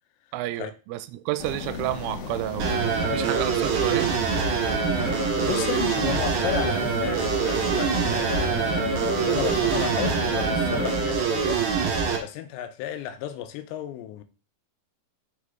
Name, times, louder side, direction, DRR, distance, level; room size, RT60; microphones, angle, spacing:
voice 1, 0.3-2.7 3.1-4.1, right 15 dB, 85° right, 3.0 m, -30 dB
sound 1, 1.4-11.1, left 5 dB, 60° left, 2.3 m, -35 dB
sound 2, 2.6-12.2, right 6 dB, 60° right, 3.2 m, -25 dB
voice 2, 5.4-11.6 12.2-14.2, left 10 dB, 80° left, 2.7 m, -33 dB
6.8 x 6.5 x 3.7 m
omnidirectional pair, 5.6 m